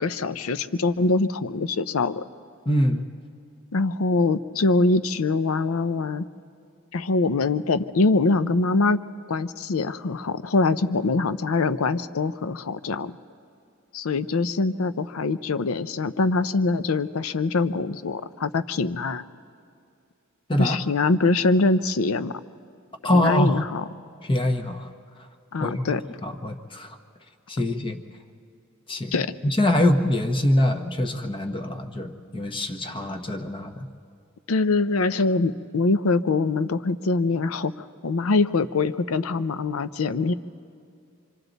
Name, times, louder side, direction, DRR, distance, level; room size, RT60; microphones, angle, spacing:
voice 1, 0.0-2.2 3.7-6.2 6.9-9.0 9.3-13.1 13.9-19.2 20.6-22.4 23.1-23.8 25.5-26.0 29.1-29.3 34.5-40.3, left 3 dB, 75° left, 13 dB, 0.6 m, -23 dB
voice 2, 2.6-3.1 20.5-20.8 23.0-23.6 24.2-24.9 25.6-25.9 26.2-27.0 27.5-28.0 28.9-29.1 29.4-33.9, left 1 dB, 25° left, 5 dB, 1.0 m, -24 dB
28.0 x 25.0 x 4.0 m, 2.4 s
head